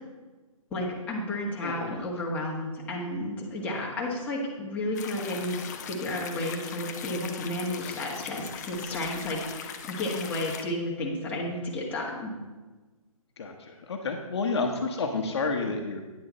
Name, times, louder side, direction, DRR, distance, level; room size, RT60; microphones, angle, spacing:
voice 1, 0.7-12.3, left 1 dB, 10° left, -5 dB, 1.5 m, -32 dB
voice 2, 1.6-2.0 13.4-16.0, left 3 dB, 45° left, 3 dB, 1.1 m, -30 dB
sound 1, 4.9-10.6, left 7 dB, 30° left, 0.7 m, -40 dB
9.7 x 8.6 x 4.1 m, 1.2 s
hypercardioid pair, 155°, 19 cm